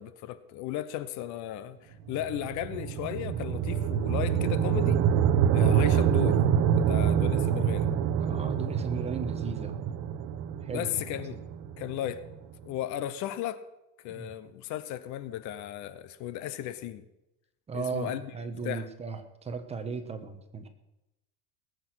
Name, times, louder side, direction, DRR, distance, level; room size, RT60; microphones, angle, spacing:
voice 1, 0.0-5.0 5.5-6.4 6.7-7.9 10.7-11.4 11.8-12.2 12.6-13.6 14.0-17.0 17.7-18.3 18.6-18.9, left 12 dB, 60° left, 14 dB, 1.0 m, -35 dB
sound 1, 2.1-12.4, right 8 dB, 55° right, 0.9 m, -26 dB
voice 2, 8.2-10.1 10.6-11.1 14.1-14.3 17.7-20.7, right 5 dB, 20° right, 8 dB, 1.2 m, -36 dB
19.0 x 8.0 x 6.3 m, 0.94 s
cardioid pair, 155°, 33 cm